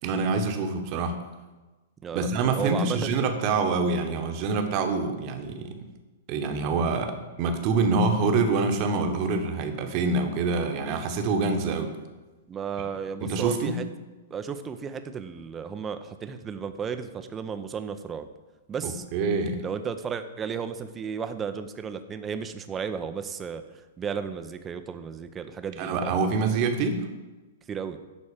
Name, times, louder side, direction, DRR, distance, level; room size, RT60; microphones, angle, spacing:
voice 1, 0.0-1.2 2.1-5.9 6.3-11.9 13.2-13.8 18.8-19.6 25.8-27.1, right 4 dB, 40° right, 6 dB, 1.3 m, -26 dB
voice 2, 2.0-3.1 12.5-13.8 14.3-18.3 18.7-19.0 19.6-26.2 27.7-28.0, right 6 dB, 20° right, 9 dB, 0.7 m, -34 dB
11.5 x 4.3 x 7.3 m, 1.2 s
figure-of-eight pair, 110°, 0 cm